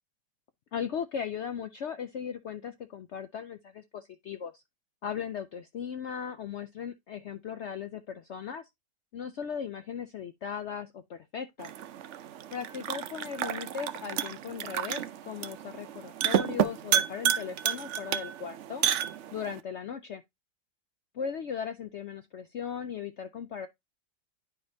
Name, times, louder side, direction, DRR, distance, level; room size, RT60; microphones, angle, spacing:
voice 1, 0.7-4.6 5.0-8.7 9.1-11.7 12.5-18.8 19.3-20.2 21.1-23.7, left 7 dB, 80° left, 0.6 m, -37 dB
sound 1, 11.6-19.6, right 10 dB, 70° right, 0.7 m, -31 dB
10.0 x 5.1 x 2.7 m
omnidirectional pair, 1.8 m